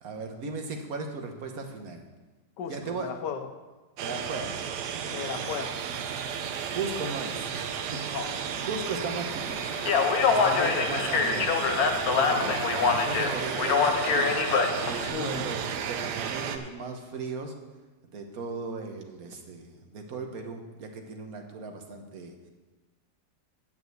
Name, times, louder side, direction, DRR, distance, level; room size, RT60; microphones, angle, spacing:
voice 1, 0.0-2.0 2.7-3.1 4.0-4.5 4.9-5.1 5.3-5.4 6.4-8.0 8.5-9.8 10.2-11.5 12.3-14.4 14.8-17.5 18.1-22.3, right 4 dB, 60° right, 4 dB, 1.5 m, -37 dB
voice 2, 2.6-3.5 5.1-5.7 8.0-8.6 10.2-11.1 12.1-12.6 15.1-15.5, left 6 dB, 80° left, 7 dB, 1.5 m, -35 dB
sound 1, 4.0-16.6, right 7 dB, 75° right, 1.3 m, -33 dB
Speech, 9.7-15.1, left 5 dB, 65° left, 1.3 m, -25 dB
9.1 x 5.8 x 7.9 m, 1.2 s
omnidirectional pair, 1.8 m